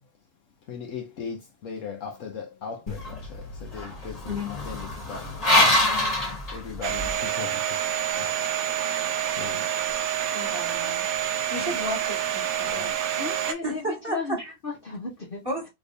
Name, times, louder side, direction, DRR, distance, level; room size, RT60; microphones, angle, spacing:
voice 1, 0.7-5.9 6.5-8.5 8.9-9.7 11.6-11.8 12.5-13.0, left 6 dB, 65° left, 1.1 m, -39 dB
sound 1, 2.9-7.2, left 1 dB, 30° left, 1.3 m, -25 dB
voice 2, 4.2-4.8 10.3-11.1 11.5-12.9 13.6-14.5 15.4-15.7, equal, 15° right, 1.7 m, -33 dB
voice 3, 5.8-6.4 13.2-14.4 14.6-15.4, left 4 dB, 45° left, 1.0 m, -35 dB
Domestic sounds home sounds, 6.8-13.5, right 10 dB, 80° right, 1.0 m, -28 dB
3.4 x 2.9 x 2.5 m
omnidirectional pair, 1.5 m